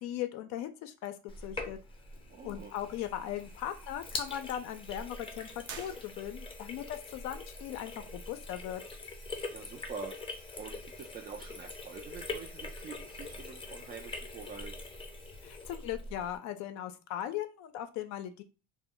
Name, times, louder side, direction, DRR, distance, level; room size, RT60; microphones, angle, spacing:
voice 1, 0.0-1.8 2.4-8.8 15.4-18.4, left 11 dB, 60° left, 9 dB, 0.5 m, -38 dB
Sink (filling or washing), 1.3-16.4, left 3 dB, 15° left, 0.6 m, -43 dB
voice 2, 2.3-2.7 9.5-14.8, right 6 dB, 30° right, 2 dB, 0.4 m, -46 dB
sound 1, 5.6-6.7, right 6 dB, 70° right, 0.7 m, -47 dB
2.1 x 2.1 x 3.6 m, 0.33 s
supercardioid pair, 110°, 31 cm